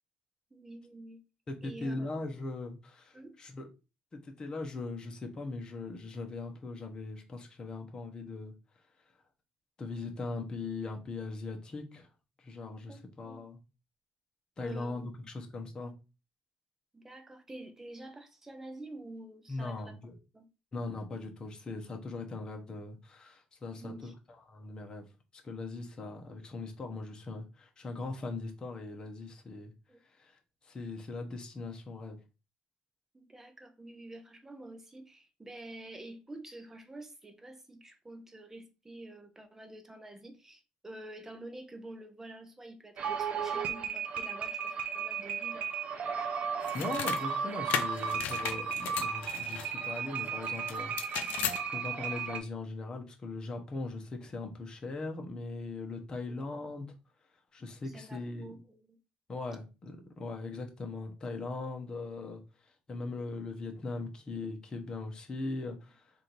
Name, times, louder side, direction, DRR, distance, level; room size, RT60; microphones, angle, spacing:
voice 1, 0.5-1.2 1.6-2.2 3.1-3.4 12.9-13.5 14.6-15.3 15.7-15.9 16.9-20.5 23.7-24.1 29.9-30.0 33.1-45.7 56.3-56.4 57.8-59.0, right 1 dB, 15° right, 0.7 m, -48 dB
voice 2, 1.5-3.7 4.1-8.5 9.8-12.1 12.4-13.6 14.6-15.9 19.5-20.2 20.7-24.1 24.5-25.1 25.3-29.7 30.2-30.4 30.6-32.2 46.7-56.9 57.5-58.6 59.3-66.1, left 3 dB, 30° left, 1.0 m, -40 dB
sound 1, 43.0-52.4, right 6 dB, 55° right, 0.7 m, -35 dB
sound 2, 46.6-47.2 47.7-49.7 50.7-51.6, left 9 dB, 75° left, 0.6 m, -35 dB
3.5 x 2.7 x 4.5 m
cardioid pair, 120°, 3 cm